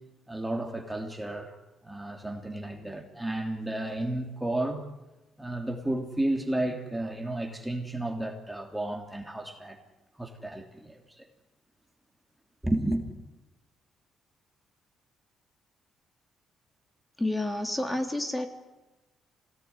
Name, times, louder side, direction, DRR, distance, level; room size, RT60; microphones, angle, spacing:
voice 1, 0.3-1.6 1.8-4.9 5.4-9.8 10.2-11.3 12.6-13.1, right 1 dB, 5° right, 3 dB, 3.1 m, -32 dB
voice 2, 17.2-18.5, left 1 dB, 15° left, 5 dB, 3.6 m, -29 dB
26.5 x 19.0 x 9.7 m, 1.1 s
cardioid pair, 90°, 0 cm